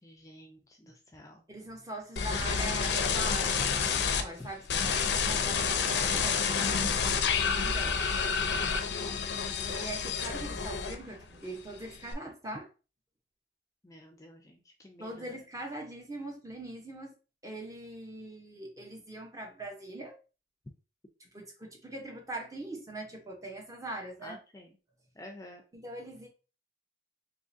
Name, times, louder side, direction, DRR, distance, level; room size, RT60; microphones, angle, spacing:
voice 1, 0.0-1.4 4.4-4.5 6.2-7.4 8.5-9.2 13.8-15.4 24.2-24.8 25.1-25.6, left 1 dB, 20° left, 0.5 m, -49 dB
voice 2, 1.5-5.6 5.9-6.4 7.6-8.0 9.7-12.7 15.0-17.1 17.4-20.2 21.2-24.4 25.7-26.3, right 1 dB, 20° right, 0.8 m, -42 dB
sound 1, 2.2-4.2 4.7-11.2 11.6-12.1, left 6 dB, 70° left, 0.5 m, -29 dB
3.7 x 2.9 x 2.6 m
head